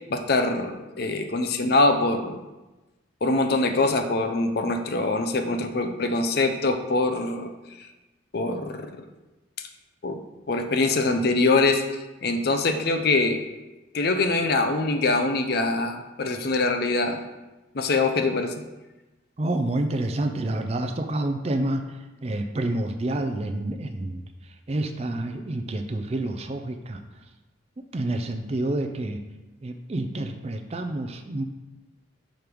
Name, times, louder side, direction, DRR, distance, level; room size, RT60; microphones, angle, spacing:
voice 1, 0.1-2.4 3.2-7.5 7.8-7.9 8.3-8.9 10.0-10.2 10.5-11.8 12.2-13.4 13.9-17.2 17.7-18.6, left 3 dB, 50° left, 6 dB, 0.5 m, -23 dB
voice 2, 19.4-27.3 27.9-29.2 29.6-31.4, right 1 dB, 30° right, 6 dB, 0.4 m, -29 dB
5.2 x 5.1 x 4.6 m, 1.1 s
head